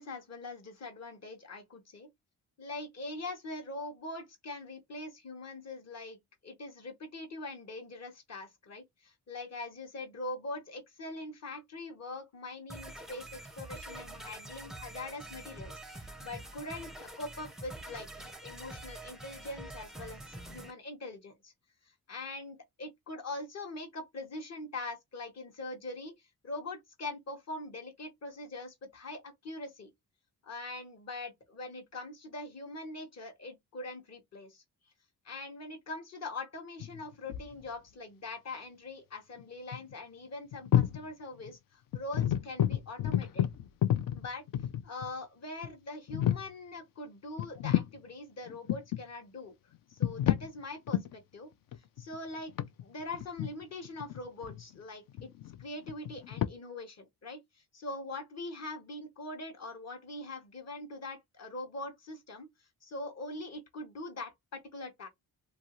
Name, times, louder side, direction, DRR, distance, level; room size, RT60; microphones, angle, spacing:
voice 1, 0.0-2.1 2.6-21.5 22.1-26.1 26.4-29.9 30.4-34.6 35.2-43.5 44.1-44.4 44.8-51.5 52.0-52.5 52.8-55.3 55.6-62.5 62.8-65.1, left 2 dB, 40° left, 1.0 m, -43 dB
sound 1, 12.7-20.7, right 1 dB, ahead, 0.5 m, -46 dB
sound 2, 36.8-37.6 39.4-39.5 39.7-39.9 40.5-41.1 41.4-41.5 41.9-45.1 45.6-45.7 46.1-46.5 47.4-48.0 48.5-49.0 49.7-50.5 50.9-51.1 51.7-54.7 55.1-56.5, left 11 dB, 60° left, 0.5 m, -30 dB
2.6 x 2.3 x 2.9 m
cardioid pair, 75°, 39 cm